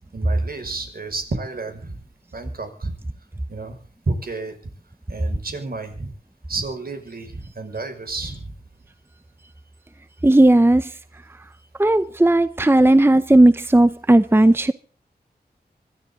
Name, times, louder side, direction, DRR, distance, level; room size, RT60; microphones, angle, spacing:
voice 1, 0.1-2.0 2.3-2.9 3.5-3.8 4.1-4.5 5.1-6.1 6.5-8.5, right 3 dB, 65° right, 5.8 m, -30 dB
voice 2, 10.2-10.9 11.8-14.7, right 1 dB, 15° right, 0.8 m, -15 dB
25.5 x 13.0 x 3.8 m
wide cardioid pair, 75°, 17 cm